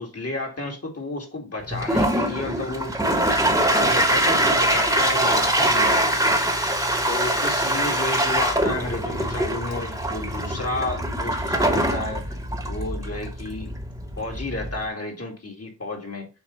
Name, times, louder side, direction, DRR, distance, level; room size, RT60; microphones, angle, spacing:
voice 1, 0.0-3.0 3.7-6.2 7.1-12.4 12.7-13.7 14.2-16.3, left 2 dB, 40° left, 2.3 m, -31 dB
Toilet flush, 1.7-14.8, right 1 dB, 10° right, 1.4 m, -23 dB
6.9 x 2.7 x 5.5 m
cardioid pair, 55°, 37 cm